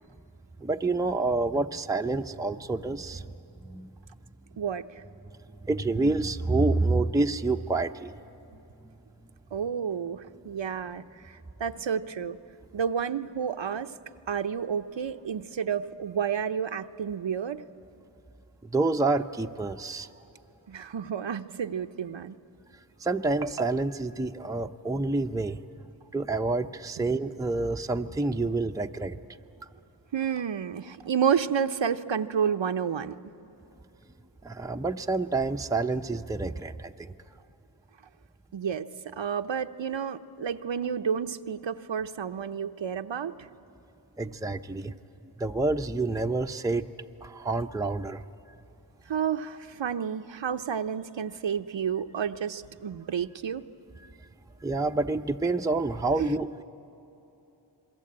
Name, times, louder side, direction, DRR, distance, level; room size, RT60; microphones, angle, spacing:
voice 1, 0.6-3.3 3.6-3.9 5.6-8.1 18.6-20.1 23.0-25.6 26.1-29.2 34.4-37.1 44.2-45.0 45.4-46.9 47.2-48.2 54.6-56.6, right 3 dB, 10° right, 5 dB, 0.6 m, -28 dB
voice 2, 4.6-5.0 9.5-12.4 12.7-13.9 14.3-17.6 20.7-22.4 30.1-33.2 38.5-43.5 49.1-53.6 56.2-56.4, right 7 dB, 75° right, 8 dB, 0.7 m, -30 dB
28.0 x 22.0 x 8.7 m, 3.0 s
wide cardioid pair, 45°, 46 cm